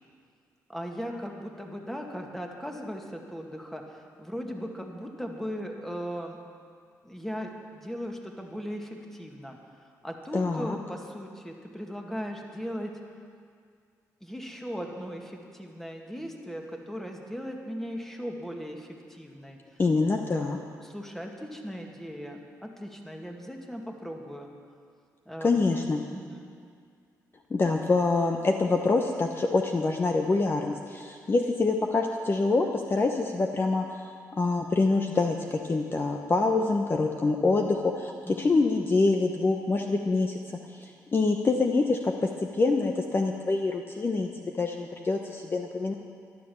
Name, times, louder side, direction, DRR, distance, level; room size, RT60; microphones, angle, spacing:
voice 1, 0.7-6.4 7.0-9.6 10.0-12.9 14.2-19.6 20.8-24.5 25.3-25.5 26.1-26.5 38.3-38.4, equal, 5° left, 1 dB, 2.1 m, -38 dB
voice 2, 10.3-10.8 19.8-20.6 25.4-26.0 27.5-34.0 34.3-40.4 40.7-44.3 44.5-45.9, left 3 dB, 35° left, 3 dB, 1.0 m, -25 dB
13.0 x 11.5 x 7.1 m, 2.2 s
cardioid pair, 80°, 6 cm